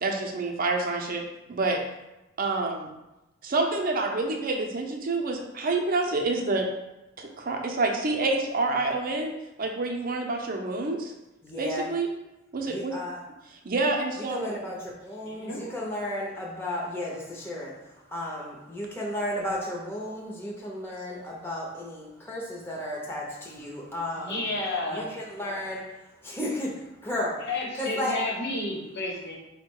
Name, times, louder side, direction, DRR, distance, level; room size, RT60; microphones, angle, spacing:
voice 1, 0.0-1.2 1.5-1.8 2.4-2.9 3.4-6.7 7.2-9.3 9.6-11.1 11.6-12.1 12.5-12.9 13.6-14.6, right 3 dB, 50° right, 2 dB, 0.6 m, -27 dB
voice 2, 11.4-11.9 12.7-13.2 14.3-17.7 18.1-24.4 24.9-25.8 26.2-27.4 27.8-28.2, left 1 dB, 10° left, -4 dB, 0.7 m, -33 dB
voice 3, 15.2-15.8 24.1-25.1 27.4-29.4, left 2 dB, 60° left, -1 dB, 0.9 m, -31 dB
4.6 x 2.2 x 4.6 m, 0.97 s
head